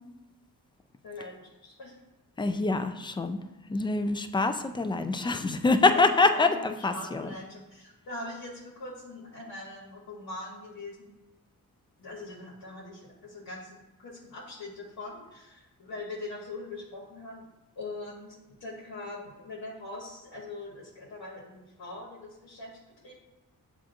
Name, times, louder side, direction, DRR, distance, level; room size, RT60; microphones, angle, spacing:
voice 1, 1.0-1.3 1.6-1.9 5.9-6.5 6.8-11.1 12.0-17.4 17.8-23.2, left 2 dB, 65° left, -5 dB, 1.1 m, -42 dB
voice 2, 2.4-3.4 3.7-7.3, left 3 dB, 15° left, 9 dB, 0.3 m, -25 dB
7.3 x 2.5 x 2.6 m, 1.0 s
supercardioid pair, 45°, 38 cm